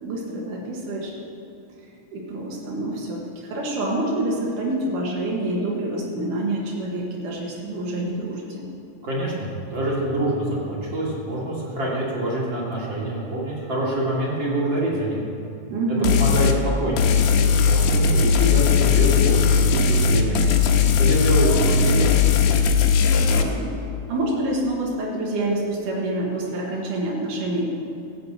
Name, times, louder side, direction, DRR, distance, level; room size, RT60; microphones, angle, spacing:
voice 1, 0.0-1.1 2.1-8.6 15.7-16.3 21.4-21.6 23.1-23.8 24.1-27.7, right 1 dB, 85° right, -2 dB, 3.3 m, -27 dB
voice 2, 9.0-15.2 15.9-16.5 16.8-17.3 17.6-20.4 21.0-22.1, right 1 dB, 40° right, -5 dB, 3.1 m, -25 dB
sound 1, 16.0-16.6 17.0-23.4, left 6 dB, 85° left, 2.4 m, -18 dB
15.0 x 6.7 x 8.1 m, 2.7 s
omnidirectional pair, 3.5 m